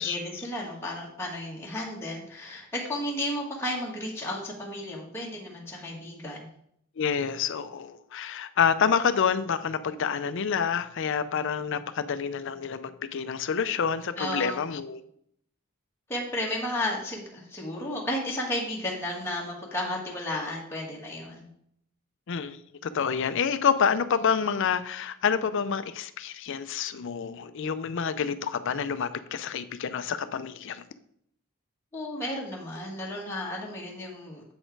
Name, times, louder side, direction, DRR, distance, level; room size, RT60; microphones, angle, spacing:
voice 1, 0.0-6.5 14.2-14.6 16.1-21.5 31.9-34.4, left 1 dB, 10° left, -3 dB, 1.2 m, -33 dB
voice 2, 7.0-15.0 22.3-30.8, left 7 dB, 60° left, 12 dB, 0.5 m, -28 dB
7.7 x 4.3 x 4.6 m, 0.69 s
head